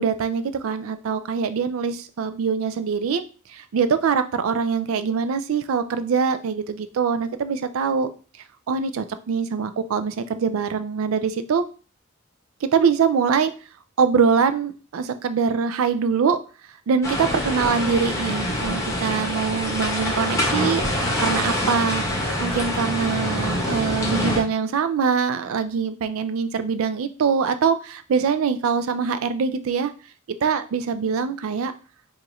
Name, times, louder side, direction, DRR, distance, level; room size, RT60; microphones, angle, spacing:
voice 1, 0.0-3.2 3.5-8.1 8.7-11.6 12.6-13.5 14.0-16.4 16.9-20.8 21.2-22.0 22.4-29.9 30.4-31.7, right 6 dB, 70° right, 11 dB, 0.4 m, -23 dB
sound 1, 17.0-24.4, left 1 dB, 15° left, 1.1 m, -25 dB
4.7 x 2.5 x 2.9 m, 0.37 s
head